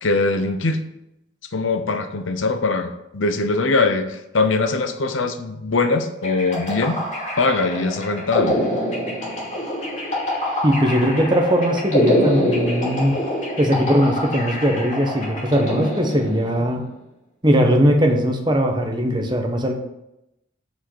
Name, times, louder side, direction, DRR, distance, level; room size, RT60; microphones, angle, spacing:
voice 1, 0.0-0.9 1.5-7.1 7.4-8.6, left 3 dB, 80° left, 9 dB, 0.8 m, -22 dB
sound 1, 6.2-16.7, equal, 35° left, 2.6 m, -25 dB
voice 2, 10.6-13.2 13.6-16.8 17.4-19.8, equal, 20° right, 2 dB, 1.0 m, -19 dB
6.4 x 5.3 x 6.2 m, 0.87 s
head